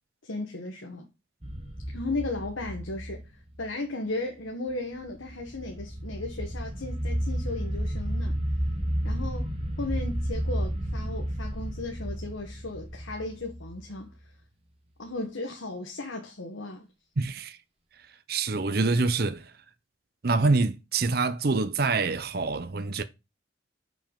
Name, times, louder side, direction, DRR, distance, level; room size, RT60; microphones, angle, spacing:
voice 1, 0.2-1.1 1.9-3.2 3.6-8.3 9.0-9.5 9.8-14.1 15.0-16.9, left 2 dB, 90° left, 1.2 m, -35 dB
sound 1, 1.4-3.7 5.1-14.0, equal, 30° right, 1.7 m, -32 dB
voice 2, 17.2-17.6 18.3-19.4 20.2-23.0, right 3 dB, 50° right, 0.7 m, -26 dB
5.5 x 5.4 x 5.2 m
head